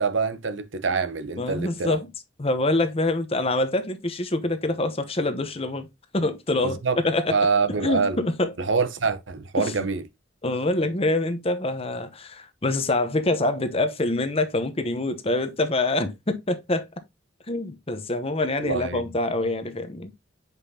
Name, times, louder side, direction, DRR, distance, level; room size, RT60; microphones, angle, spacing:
voice 1, 0.0-2.0 6.6-7.0 7.3-8.2 8.6-10.0 18.6-19.0, right 4 dB, 75° right, 0.9 m, -25 dB
voice 2, 1.4-2.1 2.4-5.9 6.1-7.3 7.7-8.5 9.6-9.8 10.4-16.9 17.5-20.1, left 2 dB, 30° left, 1.0 m, -25 dB
8.0 x 5.3 x 2.8 m
head